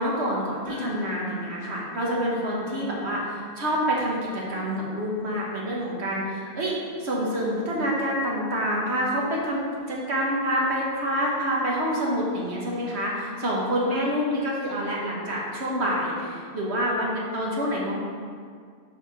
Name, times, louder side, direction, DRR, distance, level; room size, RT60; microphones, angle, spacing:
voice 1, 0.0-6.7 7.0-18.0, equal, 70° right, -3 dB, 1.5 m, -27 dB
sound 1, 0.7-8.7 9.3-9.6 10.0-10.1 11.5-11.6, left 4 dB, 50° right, 1.9 m, -48 dB
6.7 x 4.5 x 5.6 m, 2.1 s
omnidirectional pair, 1.1 m